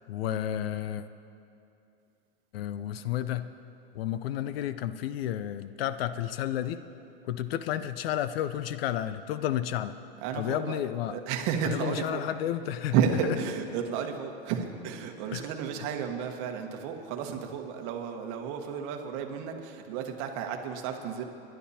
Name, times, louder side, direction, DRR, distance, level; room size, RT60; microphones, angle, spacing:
voice 1, 0.1-1.0 2.5-3.5 3.9-6.8 7.2-9.9 10.4-11.1 11.6-12.9 15.3-15.4, left 11 dB, 70° left, 12 dB, 0.7 m, -31 dB
voice 2, 10.2-10.8 11.1-12.2 12.9-21.2, right 7 dB, 45° right, 4 dB, 1.4 m, -32 dB
28.0 x 11.5 x 2.9 m, 2.7 s
supercardioid pair, 140°, 30 cm